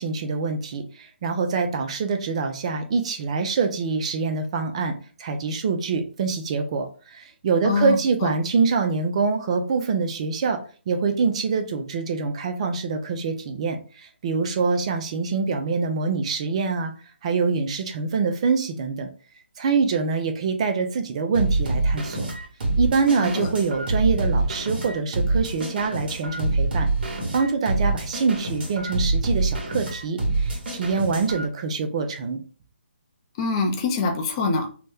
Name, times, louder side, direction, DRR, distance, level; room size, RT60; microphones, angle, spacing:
voice 1, 0.0-10.6 10.9-16.9 17.2-19.1 19.6-22.3 22.8-26.9 27.3-32.4, right 5 dB, 30° right, 6 dB, 0.4 m, -25 dB
voice 2, 7.6-8.3 23.2-23.5 33.4-34.7, left 4 dB, 25° left, 4 dB, 0.5 m, -24 dB
sound 1, 21.3-31.5, right 2 dB, 50° right, 1.3 m, -25 dB
2.8 x 2.1 x 3.4 m, 0.39 s
figure-of-eight pair, 155°, 6 cm